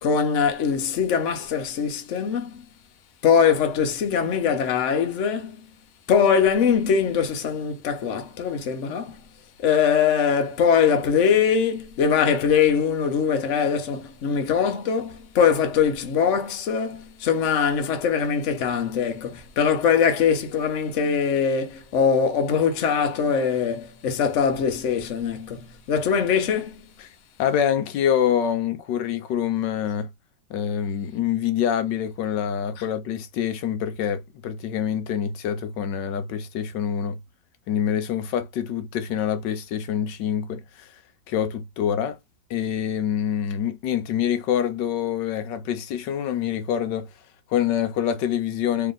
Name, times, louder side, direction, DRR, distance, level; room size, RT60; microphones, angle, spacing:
voice 1, 0.0-2.6 3.2-5.7 6.1-9.2 9.6-26.8, left 7 dB, 50° left, 1.1 m, -22 dB
voice 2, 27.4-30.1 30.5-37.2 37.7-40.9 41.3-42.2 42.5-47.1 47.5-48.9, left 9 dB, 85° left, 1.3 m, -26 dB
3.4 x 2.8 x 3.8 m
omnidirectional pair, 1.9 m